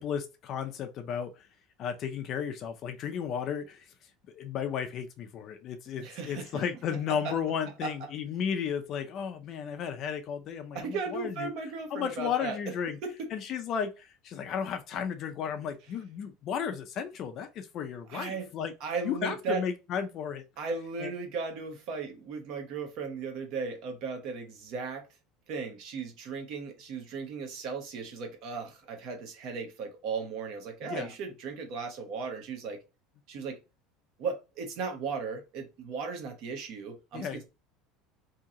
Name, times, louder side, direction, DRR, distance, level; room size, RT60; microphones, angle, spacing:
voice 1, 0.0-1.5 1.8-3.9 4.3-11.5 11.9-13.0 13.3-18.7 19.0-20.4 21.0-21.1 30.8-31.1 37.1-37.4, left 7 dB, 35° left, 0.4 m, -34 dB
voice 2, 6.0-6.6 7.1-7.3 7.8-8.1 10.7-12.7 13.0-13.3 18.1-18.5 18.8-19.6 20.6-25.1 25.5-32.8 33.3-33.6 34.2-37.4, right 5 dB, 50° right, 1.0 m, -36 dB
2.8 x 2.8 x 3.6 m
cardioid pair, 170°, 0 cm